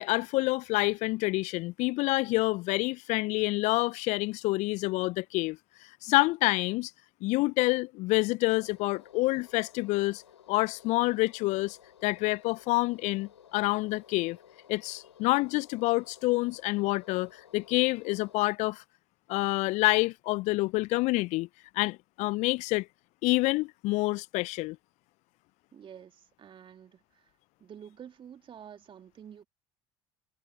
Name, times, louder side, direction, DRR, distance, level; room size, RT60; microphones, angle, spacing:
voice 1, 0.0-5.6 6.0-6.9 7.2-10.2 10.5-14.4 14.7-18.8 19.3-21.5 21.7-22.9 23.2-24.8, left 22 dB, 55° left, 0.7 m, -27 dB
sound 1, 8.5-18.4, left 9 dB, 80° left, 5.9 m, -56 dB
voice 2, 25.7-27.3 27.6-29.5, right 8 dB, 35° right, 2.9 m, -49 dB
figure-of-eight pair, 65°, 14 cm